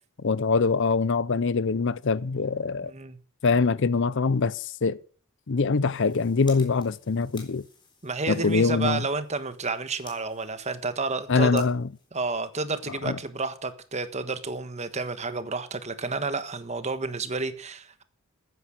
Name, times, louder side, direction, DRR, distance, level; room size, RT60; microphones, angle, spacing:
voice 1, 0.2-2.9 3.4-5.0 5.5-7.6 8.3-9.1 11.3-11.9 13.0-13.2, left 4 dB, 60° left, 0.6 m, -24 dB
voice 2, 2.8-3.2 8.0-11.7 12.1-18.0, right 3 dB, 30° right, 1.3 m, -31 dB
sound 1, 5.7-13.0, left 4 dB, 20° left, 4.0 m, -54 dB
14.5 x 9.4 x 6.4 m
head